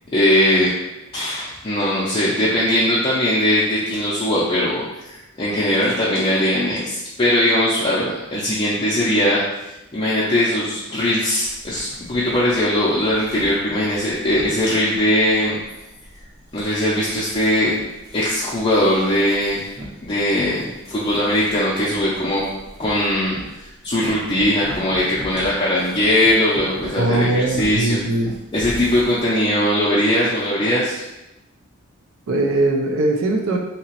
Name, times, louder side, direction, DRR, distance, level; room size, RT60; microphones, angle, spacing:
voice 1, 0.1-0.7 1.1-9.4 9.9-15.6 16.5-17.7 18.1-19.7 20.0-22.4 22.8-23.4 23.6-28.0 28.5-31.0, left 1 dB, 25° left, -8 dB, 0.5 m, -20 dB
sound 1, 11.4-29.3, equal, 20° right, 0.6 m, -40 dB
voice 2, 27.0-28.3 32.3-33.6, right 2 dB, 85° right, 2 dB, 0.5 m, -20 dB
2.9 x 2.8 x 2.9 m, 0.96 s
head